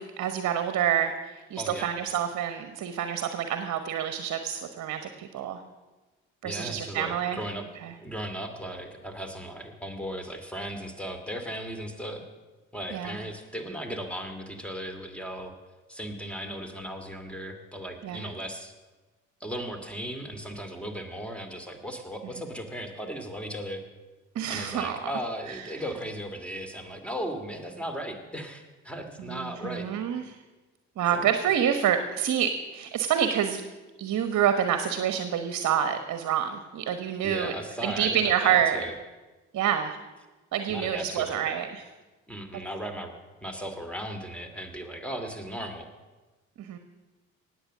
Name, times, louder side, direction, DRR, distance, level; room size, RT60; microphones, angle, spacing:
voice 1, 0.0-5.6 6.4-7.4 7.8-7.9 12.9-13.2 18.0-18.2 24.3-25.0 25.5-25.6 29.3-30.4 31.0-33.6 34.0-37.5 37.8-38.8 39.5-40.0 40.5-41.8 46.6-46.8, right 9 dB, 50° right, 9 dB, 1.2 m, -27 dB
voice 2, 6.4-7.7 8.0-12.2 12.7-15.5 15.9-18.7 19.4-23.8 24.5-29.9 31.1-31.3 37.2-38.9 40.7-41.5 42.3-43.1 43.4-45.9, equal, 5° left, 6 dB, 2.5 m, -36 dB
18.0 x 8.0 x 6.6 m, 1.2 s
hypercardioid pair, 50°, 37 cm